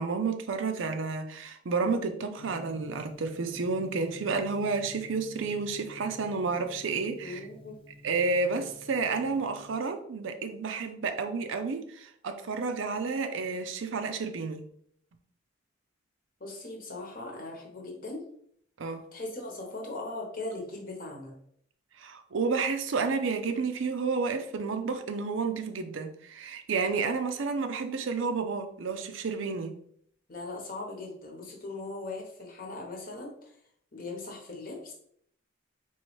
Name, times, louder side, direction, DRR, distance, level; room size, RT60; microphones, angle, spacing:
voice 1, 0.0-7.4 8.0-14.6 18.8-19.0 22.0-29.8, right 4 dB, 70° right, 0.5 m, -31 dB
Gong, 2.4-9.7, left 1 dB, 25° left, 0.4 m, -50 dB
voice 2, 7.2-7.7 16.4-18.2 19.1-21.4 30.3-33.6 33.9-34.9, left 2 dB, 45° left, 0.9 m, -39 dB
4.4 x 3.1 x 3.1 m
head